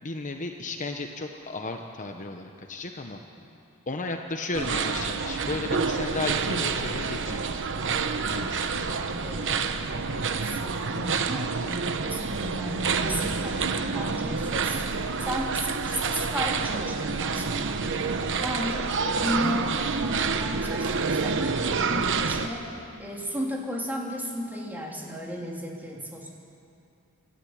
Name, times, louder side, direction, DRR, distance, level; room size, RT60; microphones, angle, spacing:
voice 1, 0.0-3.2 3.9-7.4 8.3-8.9, left 3 dB, 35° left, 4 dB, 1.0 m, -34 dB
sound 1, 4.5-22.5, right 5 dB, 60° right, 1.0 m, -28 dB
voice 2, 8.9-14.8 15.2-17.8 18.4-18.9 19.2-22.6 23.0-26.4, equal, 10° right, -2 dB, 3.2 m, -34 dB
27.5 x 13.5 x 8.8 m, 2.7 s
head